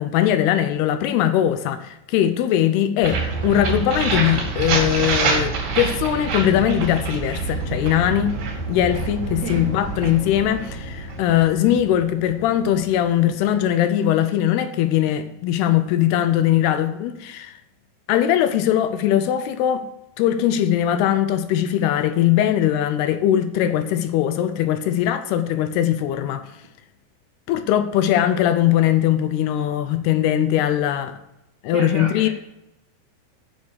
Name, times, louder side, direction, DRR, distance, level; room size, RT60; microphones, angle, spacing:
voice 1, 0.0-8.3 8.7-17.6 18.1-19.9 20.2-26.5 27.5-31.2 31.6-32.3, left 11 dB, 80° left, 2.6 m, -20 dB
sound 1, 3.0-12.8, right 4 dB, 90° right, 4.9 m, -26 dB
voice 2, 31.7-32.3, right 2 dB, 70° right, 1.8 m, -31 dB
9.6 x 7.1 x 6.6 m
omnidirectional pair, 4.9 m